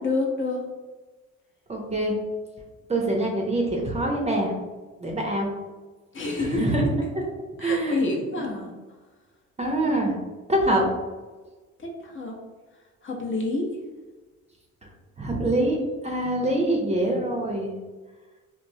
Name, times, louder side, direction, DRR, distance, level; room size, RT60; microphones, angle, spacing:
voice 1, 0.0-0.6 6.1-6.6 7.6-8.7 11.8-12.3 13.0-13.7, left 3 dB, 40° left, -1 dB, 0.6 m, -28 dB
voice 2, 1.7-2.1 2.9-4.5 5.0-5.5 6.5-6.8 7.6-8.0 9.6-10.1 10.5-10.8 15.2-15.8 16.0-17.7, right 1 dB, 20° right, -1 dB, 0.5 m, -24 dB
3.0 x 2.0 x 2.6 m, 1.3 s
cardioid pair, 90°, 30 cm